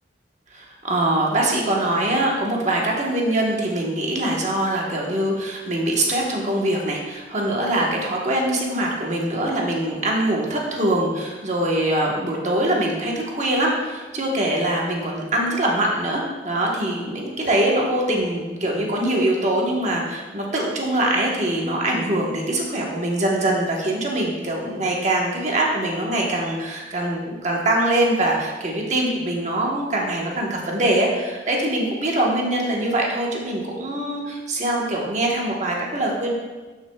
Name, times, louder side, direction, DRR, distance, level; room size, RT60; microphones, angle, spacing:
voice 1, 0.5-36.3, right 1 dB, 40° right, -2 dB, 1.2 m, -23 dB
11.5 x 6.6 x 2.3 m, 1.3 s
head